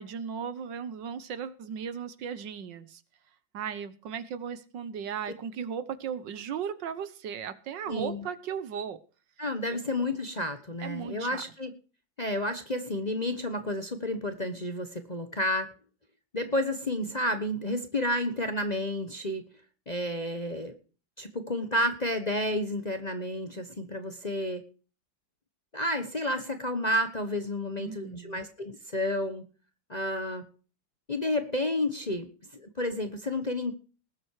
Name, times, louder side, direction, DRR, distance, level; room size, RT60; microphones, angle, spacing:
voice 1, 0.0-3.0 3.5-9.0 9.7-9.8 10.8-11.4 27.8-28.4, right 7 dB, 70° right, 1.6 m, -36 dB
voice 2, 7.9-8.2 9.4-11.7 12.2-15.7 16.3-19.4 19.9-20.8 21.2-24.6 25.7-29.4 29.9-30.4 31.1-33.7, left 1 dB, 25° left, 1.0 m, -31 dB
19.5 x 7.7 x 4.8 m
omnidirectional pair, 2.1 m